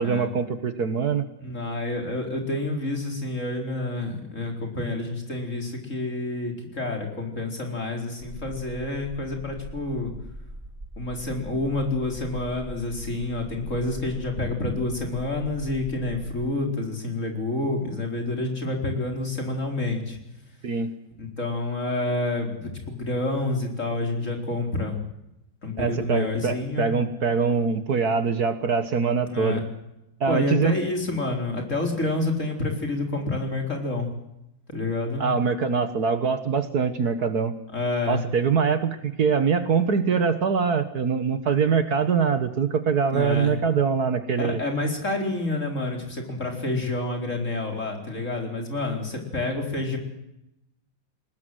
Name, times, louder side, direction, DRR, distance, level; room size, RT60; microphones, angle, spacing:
voice 1, 0.0-1.3 20.6-20.9 25.8-29.6 30.2-30.8 35.2-37.5 38.1-44.6, right 6 dB, 55° right, 10 dB, 1.7 m, -23 dB
voice 2, 1.4-10.1 11.0-20.2 21.2-25.0 25.6-26.9 29.3-29.6 30.3-34.1 34.7-35.3 37.7-38.2 43.1-43.6 44.4-50.0, left 2 dB, 40° left, 3 dB, 4.5 m, -28 dB
sound 1, 8.2-16.5, right 1 dB, 15° right, 2.9 m, -42 dB
21.5 x 19.5 x 7.8 m, 0.86 s
omnidirectional pair, 2.1 m